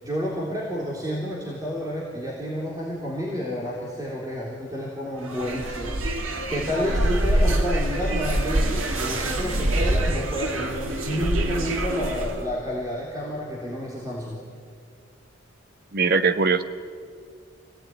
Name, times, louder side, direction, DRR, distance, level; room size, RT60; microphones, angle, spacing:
voice 1, 0.0-6.0 6.5-14.4, equal, 15° right, -5 dB, 3.4 m, -30 dB
sound 1, 5.2-12.4, right 1 dB, 85° right, 2.4 m, -25 dB
voice 2, 15.9-16.6, right 4 dB, 50° right, 10 dB, 1.1 m, -20 dB
26.0 x 17.5 x 9.6 m, 2.2 s
head